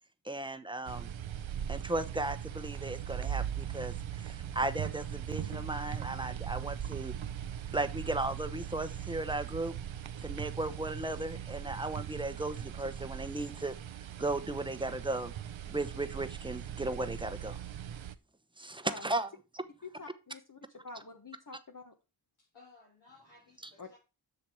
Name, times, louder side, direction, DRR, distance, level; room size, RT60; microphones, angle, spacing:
voice 1, 0.2-1.1 1.7-7.1 7.7-9.7 10.2-13.7 14.2-15.3 15.7-17.6 18.6-19.3 19.5-19.6, right 2 dB, 10° right, 10 dB, 1.0 m, -36 dB
sound 1, 0.8-18.1, right 9 dB, 70° right, 0.7 m, -40 dB
voice 2, 19.8-21.9 23.8-23.9, left 3 dB, 40° left, 4 dB, 1.3 m, -47 dB
voice 3, 22.4-24.0, left 3 dB, 75° left, -4 dB, 3.2 m, -59 dB
7.7 x 6.0 x 4.6 m, 0.30 s
cardioid pair, 50°, 49 cm